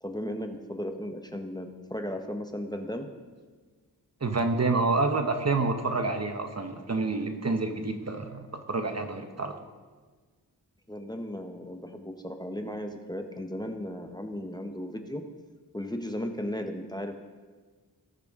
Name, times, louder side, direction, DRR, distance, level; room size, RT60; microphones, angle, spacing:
voice 1, 0.0-3.1 10.9-15.2 15.7-17.2, left 1 dB, 10° left, 5 dB, 0.9 m, -35 dB
voice 2, 4.2-9.6, right 3 dB, 40° right, 6 dB, 1.0 m, -28 dB
19.0 x 6.8 x 3.6 m, 1.4 s
wide cardioid pair, 70°, 41 cm